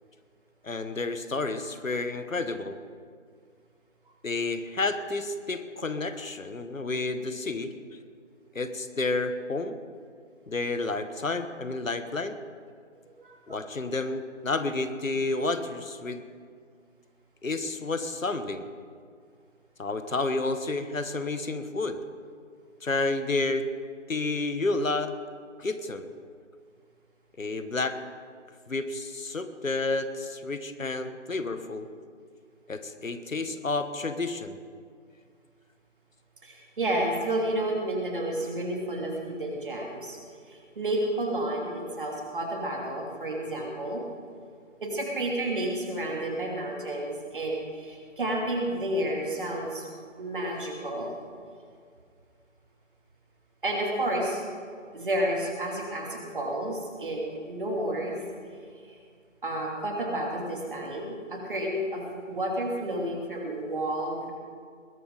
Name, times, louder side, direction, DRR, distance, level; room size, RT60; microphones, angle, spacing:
voice 1, 0.6-2.8 4.2-7.7 8.5-9.8 10.5-12.4 13.5-16.2 17.4-18.7 19.8-22.0 22.8-23.6 24.1-25.1 25.6-26.1 27.4-28.0 28.7-31.9 32.7-34.6, left 3 dB, 80° left, 10 dB, 1.3 m, -30 dB
voice 2, 13.2-13.6 36.4-40.2 40.5-44.0 44.8-49.8 50.2-51.2 53.6-54.4 54.9-58.2 58.9-59.0 59.4-64.3, right 1 dB, 40° right, -1 dB, 2.8 m, -31 dB
20.5 x 11.5 x 3.9 m, 2.1 s
figure-of-eight pair, 165°, 39 cm